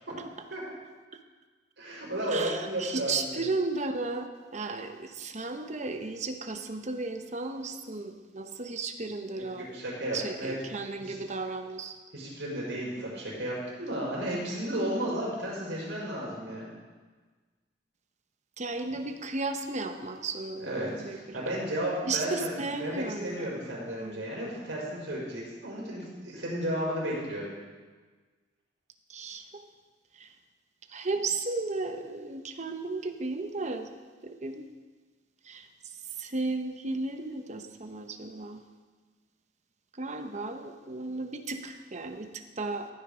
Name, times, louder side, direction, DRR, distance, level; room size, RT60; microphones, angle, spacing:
voice 1, 1.8-3.3 9.3-10.5 11.0-11.2 12.1-16.7 20.6-27.5, right 1 dB, 75° right, -5 dB, 5.2 m, -33 dB
voice 2, 2.3-4.3 4.5-9.7 10.1-12.0 15.0-15.1 18.6-21.5 22.0-24.2 29.1-29.6 30.1-30.3 30.9-33.9 34.2-34.7 35.4-35.7 36.2-38.6 39.9-42.9, right 3 dB, 40° right, 6 dB, 1.0 m, -34 dB
15.5 x 9.5 x 5.0 m, 1.4 s
head